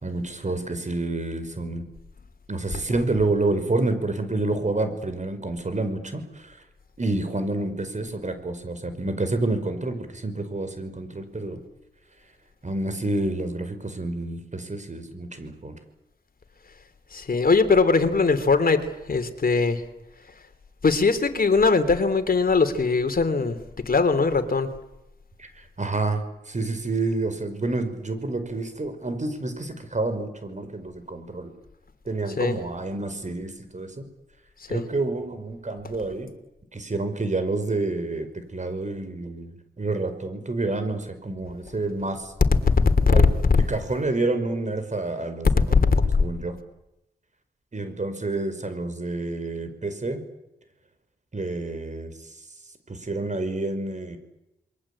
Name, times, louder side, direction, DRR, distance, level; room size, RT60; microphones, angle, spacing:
voice 1, 0.0-1.9 2.5-6.6 7.0-11.6 12.6-15.8 25.4-25.5 25.8-31.5 32.1-34.1 34.7-36.3 36.7-39.5 39.8-42.3 43.1-43.3 43.7-45.8 46.2-46.6 47.7-50.2 51.3-52.1 52.9-54.2, right 2 dB, 40° right, 10 dB, 5.4 m, -28 dB
voice 2, 17.1-18.8 19.1-19.8 20.8-23.6 23.9-24.7 32.4-32.6 34.7-34.8 43.1-43.6 45.7-46.1, left 4 dB, 50° left, 9 dB, 3.3 m, -20 dB
27.5 x 23.0 x 8.7 m, 0.91 s
cardioid pair, 45°, 19 cm